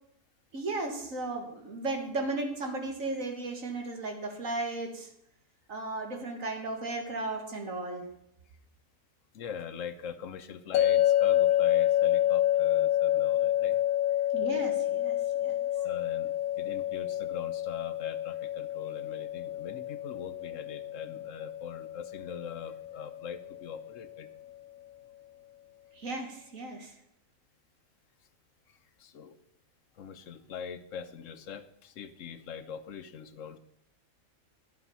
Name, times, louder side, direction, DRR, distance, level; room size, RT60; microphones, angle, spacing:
voice 1, 0.5-5.1 5.7-8.0 14.3-15.6 26.0-26.9, right 2 dB, 70° right, 3 dB, 2.2 m, -35 dB
voice 2, 9.3-13.8 15.8-24.3 28.7-29.4 30.0-33.6, left 7 dB, 70° left, 12 dB, 1.0 m, -42 dB
sound 1, 10.7-23.9, left 12 dB, 90° left, 1.1 m, -28 dB
11.5 x 8.4 x 5.5 m, 0.76 s
omnidirectional pair, 1.5 m